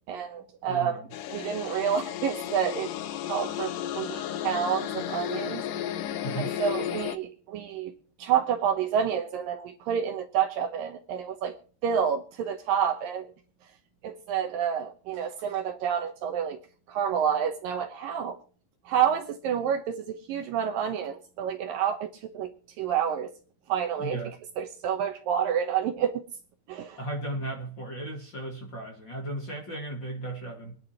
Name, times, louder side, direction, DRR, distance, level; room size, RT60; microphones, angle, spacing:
voice 1, 0.1-1.0 1.3-2.9 3.3-5.6 6.4-7.9 8.2-11.6 11.8-13.3 14.0-16.6 16.9-18.4 18.9-23.3 23.7-24.2 24.6-26.2 26.7-27.0, right 8 dB, 70° right, 2.4 m, -29 dB
voice 2, 0.7-1.1 6.2-6.6 24.0-24.3 27.0-30.8, right 1 dB, 35° left, 2.0 m, -35 dB
sound 1, 1.1-7.2, left 11 dB, 70° left, 2.1 m, -33 dB
24.5 x 10.5 x 2.9 m
omnidirectional pair, 4.8 m